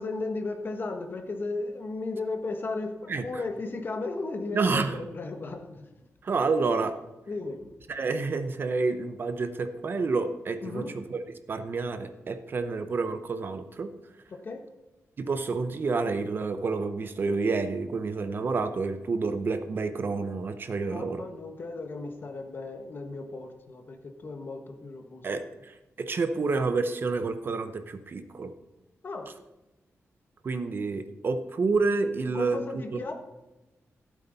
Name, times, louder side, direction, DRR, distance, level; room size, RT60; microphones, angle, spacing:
voice 1, 0.0-5.9 7.3-7.7 10.6-10.9 14.4-14.6 20.9-25.4 29.0-29.3 32.3-33.1, left 3 dB, 40° left, 5 dB, 1.3 m, -35 dB
voice 2, 3.1-3.4 4.5-5.0 6.2-6.9 7.9-11.2 11.5-13.9 15.2-21.2 25.2-28.5 30.4-33.0, right 4 dB, 45° right, 9 dB, 0.8 m, -29 dB
15.5 x 8.4 x 4.1 m, 1.0 s
wide cardioid pair, 175°, 5 cm